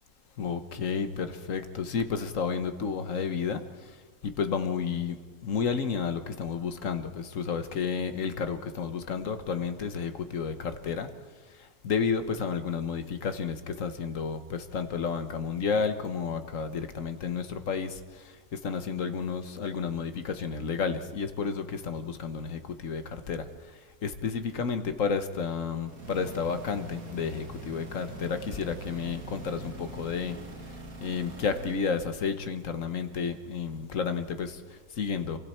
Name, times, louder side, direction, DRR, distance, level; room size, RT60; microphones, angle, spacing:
voice 1, 0.4-11.1 11.5-35.4, left 6 dB, 60° left, 9 dB, 1.5 m, -32 dB
sound 1, 25.8-31.9, right 2 dB, 70° right, 2.3 m, -43 dB
28.0 x 24.0 x 4.4 m, 1.4 s
omnidirectional pair, 1.6 m